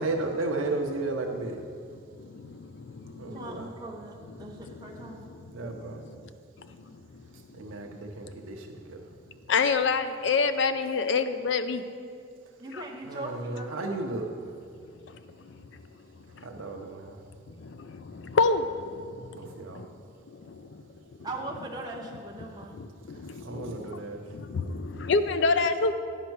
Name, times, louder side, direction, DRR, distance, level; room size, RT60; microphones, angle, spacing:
voice 1, 0.0-1.6 3.2-3.7 5.5-6.0 7.5-9.0 13.1-14.3 16.4-17.2 19.3-19.8 23.4-24.2, right 2 dB, 90° right, 2 dB, 0.6 m, -33 dB
voice 2, 2.1-3.6 4.3-6.3 6.6-7.9 9.5-11.8 12.7-12.8 15.1-15.8 16.2-16.8 17.6-19.4 19.7-19.9 20.3-20.8 22.7-25.9, left 4 dB, 65° left, 10 dB, 0.4 m, -30 dB
voice 3, 3.3-5.3 12.6-13.7 21.2-22.8, right 2 dB, 20° right, -2 dB, 0.6 m, -39 dB
9.9 x 5.2 x 4.6 m, 2.4 s
head